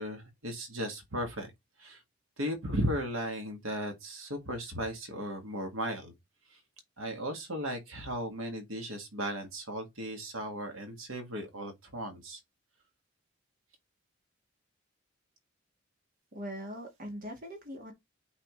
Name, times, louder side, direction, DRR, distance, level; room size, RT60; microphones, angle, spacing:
voice 1, 0.0-1.5 1.8-2.0 2.4-6.1 7.0-12.4, equal, 80° right, 1.8 m, -36 dB
voice 2, 16.3-17.9, equal, 45° right, 1.6 m, -41 dB
8.8 x 4.1 x 3.1 m
head